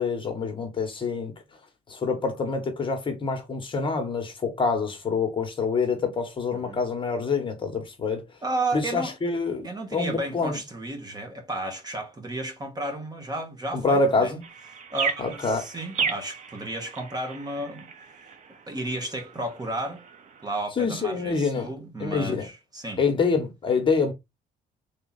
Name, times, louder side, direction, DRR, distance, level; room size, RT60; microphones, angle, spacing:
voice 1, 0.0-1.3 1.9-8.2 8.7-10.6 13.7-14.4 15.2-15.6 20.8-21.7 22.0-22.5 23.0-24.1, left 4 dB, 30° left, 1.3 m, -26 dB
voice 2, 8.4-9.1 9.6-14.4 14.9-17.9 18.7-20.0 20.4-23.0, right 2 dB, 25° right, 1.3 m, -33 dB
sound 1, 14.4-20.7, right 6 dB, 45° right, 0.8 m, -35 dB
3.6 x 2.8 x 4.0 m
cardioid pair, 110°, 17 cm